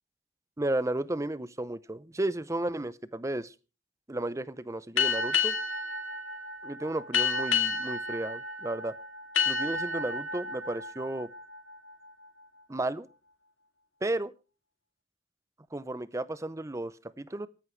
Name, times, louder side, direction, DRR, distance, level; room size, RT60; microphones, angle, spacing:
voice 1, 0.6-3.5 4.1-5.6 6.6-9.0 9.5-11.3 12.7-13.1 14.0-14.3 15.7-17.5, right 1 dB, 15° right, 17 dB, 0.6 m, -33 dB
sound 1, 5.0-12.3, left 5 dB, 85° left, 2.6 m, -31 dB
26.5 x 11.0 x 3.2 m, 0.34 s
head